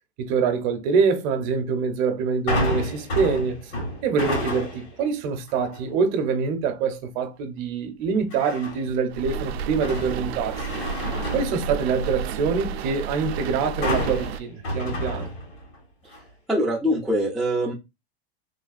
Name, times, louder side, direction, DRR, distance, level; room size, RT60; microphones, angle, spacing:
voice 1, 0.2-3.7 4.0-10.7 11.3-15.3, right 5 dB, 50° right, 0.7 m, -25 dB
sound 1, 2.5-5.0 5.5-5.9 8.3-9.0 9.4-12.3 13.8-15.8 16.1-16.2, left 1 dB, 80° left, 1.9 m, -30 dB
sound 2, 9.1-14.4, right 6 dB, 85° right, 0.5 m, -31 dB
voice 2, 16.5-17.7, equal, ahead, 0.3 m, -23 dB
3.2 x 2.3 x 2.4 m
supercardioid pair, 135°, 31 cm